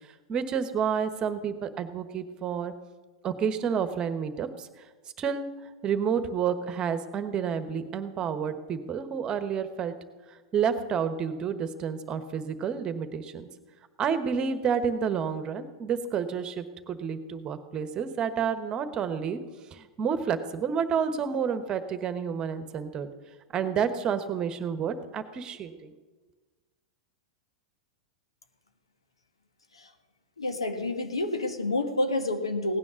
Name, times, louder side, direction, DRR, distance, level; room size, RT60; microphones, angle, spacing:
voice 1, 0.3-2.7 3.2-4.7 5.2-10.0 10.5-13.5 14.0-19.4 19.7-23.1 23.5-25.9, right 7 dB, 30° right, 10 dB, 1.3 m, -30 dB
voice 2, 30.4-32.8, left 2 dB, 90° left, 6 dB, 1.4 m, -29 dB
17.0 x 9.8 x 6.4 m, 1.3 s
hypercardioid pair, 100°, 3 cm